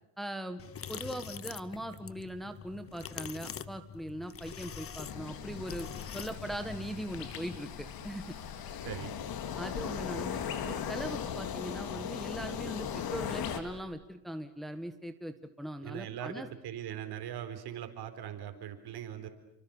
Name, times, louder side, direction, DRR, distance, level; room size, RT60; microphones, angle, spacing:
voice 1, 0.2-0.6 0.9-5.9 6.1-8.3 9.6-16.5, right 1 dB, ahead, 7 dB, 1.5 m, -40 dB
sound 1, 0.6-7.6, left 8 dB, 30° left, 1.0 m, -45 dB
sound 2, 4.3-13.8, left 7 dB, 80° left, 4.5 m, -48 dB
sound 3, 5.0-13.6, left 8 dB, 55° left, 2.4 m, -39 dB
voice 2, 8.8-9.2 15.8-19.3, right 10 dB, 60° right, 7 dB, 4.3 m, -40 dB
29.5 x 24.5 x 7.2 m, 0.85 s
cardioid pair, 120°, 43 cm